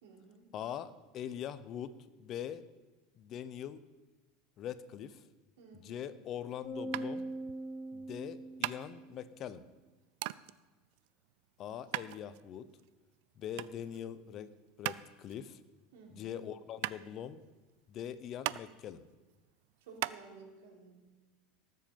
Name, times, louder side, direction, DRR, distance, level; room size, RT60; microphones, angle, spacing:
voice 1, 0.0-0.5 5.6-6.1 15.9-16.3 19.8-20.9, right 4 dB, 85° right, 0 dB, 3.6 m, -54 dB
voice 2, 0.5-2.6 3.1-3.8 4.6-5.2 5.7-7.3 7.9-9.6 11.6-12.7 13.4-14.5 14.8-15.6 16.1-17.4 17.9-19.0, left 9 dB, 40° left, 14 dB, 0.8 m, -42 dB
sound 1, 6.6-9.2, right 1 dB, 25° left, 3.4 m, -41 dB
sound 2, 6.9-20.2, right 18 dB, 70° right, 0.4 m, -42 dB
19.0 x 7.6 x 5.3 m, 1.2 s
supercardioid pair, 135°, 0 cm